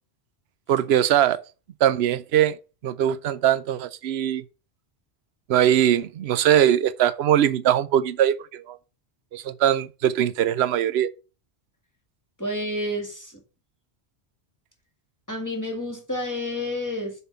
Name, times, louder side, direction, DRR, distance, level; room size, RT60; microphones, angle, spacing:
voice 1, 0.7-1.4 1.8-2.6 2.8-4.4 5.5-8.8 9.3-11.1, right 10 dB, 80° right, 0.9 m, -21 dB
voice 2, 12.4-13.4 15.3-17.1, left 1 dB, 15° left, 1.8 m, -29 dB
6.8 x 4.5 x 6.8 m
omnidirectional pair, 1.1 m